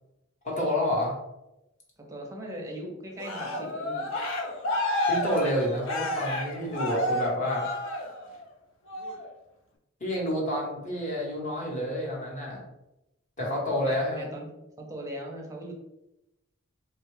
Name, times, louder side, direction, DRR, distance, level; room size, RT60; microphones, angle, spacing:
voice 1, 0.4-1.2 5.1-7.6 10.0-12.6 13.4-14.3, left 1 dB, 35° left, -3 dB, 1.0 m, -29 dB
voice 2, 2.0-4.1 13.6-14.5 14.8-15.7, right 1 dB, 15° right, 0 dB, 0.6 m, -39 dB
Cheering, 3.2-8.4 8.9-9.3, left 1 dB, 60° left, 0.5 m, -30 dB
3.4 x 2.3 x 3.2 m, 0.91 s
head